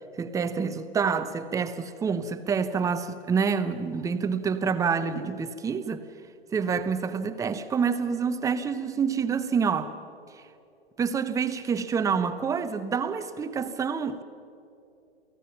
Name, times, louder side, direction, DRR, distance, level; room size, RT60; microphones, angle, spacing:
voice 1, 0.2-6.0 6.5-9.9 11.0-14.2, right 6 dB, 10° right, 0.8 m, -27 dB
28.5 x 17.5 x 5.9 m
figure-of-eight pair, 105°, 32 cm